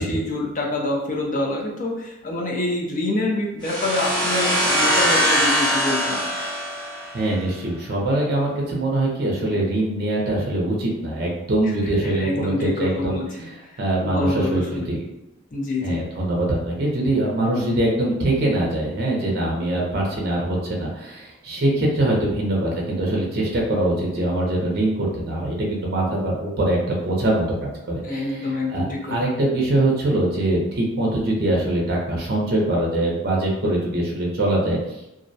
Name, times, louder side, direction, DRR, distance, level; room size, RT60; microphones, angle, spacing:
voice 1, 0.0-6.2 11.6-13.7 14.0-14.9 15.5-16.0 28.0-29.2, left 2 dB, 40° left, -1 dB, 0.4 m, -26 dB
sound 1, 3.6-7.4, equal, 20° left, 0.8 m, -22 dB
voice 2, 7.1-15.1 15.8-34.8, right 1 dB, 50° right, -2 dB, 0.5 m, -23 dB
2.4 x 2.0 x 2.6 m, 0.94 s
head